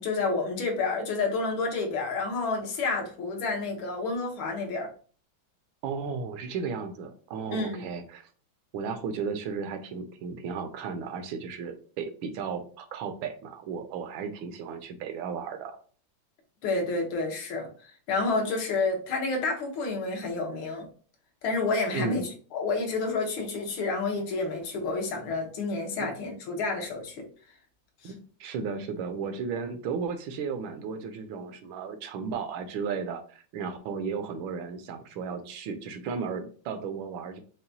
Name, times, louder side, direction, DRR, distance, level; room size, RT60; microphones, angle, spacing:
voice 1, 0.0-4.9 7.5-7.9 16.6-20.9 21.4-27.2 28.0-28.1, left 3 dB, 80° left, 1 dB, 1.8 m, -29 dB
voice 2, 5.8-8.3 8.7-15.8 21.9-22.2 26.0-26.1 28.0-37.4, right 5 dB, 80° right, 9 dB, 1.3 m, -34 dB
5.7 x 2.2 x 2.6 m, 0.41 s
omnidirectional pair, 2.2 m